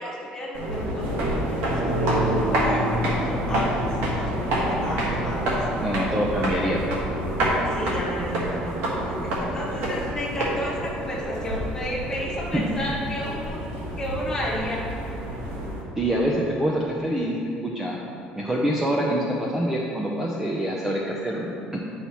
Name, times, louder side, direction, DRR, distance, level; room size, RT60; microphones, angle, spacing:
voice 1, 0.0-3.7 4.2-5.4 7.7-13.6 14.0-14.8, equal, 15° left, -6 dB, 1.6 m, -32 dB
sound 1, 0.5-15.8, right 1 dB, 85° right, 1.4 m, -27 dB
voice 2, 5.7-7.0 12.5-12.6 16.0-18.0 18.4-21.5 21.7-21.8, right 1 dB, 10° right, -3 dB, 0.5 m, -25 dB
9.6 x 5.6 x 3.0 m, 2.6 s
cardioid pair, 160°, 3 cm